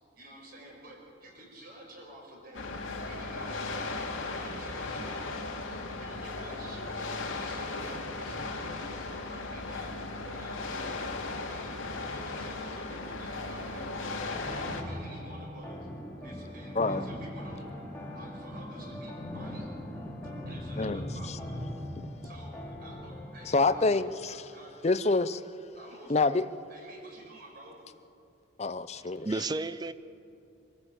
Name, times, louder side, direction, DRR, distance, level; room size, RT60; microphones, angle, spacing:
voice 1, 0.1-2.7 3.0-4.0 4.3-5.4 6.0-9.0 9.3-9.9 10.2-10.9 11.5-15.9 16.2-17.7 18.1-19.7 20.4-21.5 22.2-23.8 24.3-24.7 25.7-26.1 26.7-27.8, right 1 dB, 45° right, -1 dB, 5.1 m, -50 dB
sound 1, 2.5-14.8, left 3 dB, 80° left, 2.2 m, -36 dB
sound 2, 14.3-23.8, equal, 10° left, 2.3 m, -40 dB
voice 2, 20.8-21.4 22.0-22.1 23.5-24.5 24.8-25.4 26.1-26.5 28.6-29.3, left 3 dB, 30° left, 12 dB, 0.5 m, -27 dB
voice 3, 29.0-29.9, right 3 dB, 20° right, 14 dB, 0.4 m, -33 dB
24.5 x 14.5 x 7.7 m, 2.6 s
head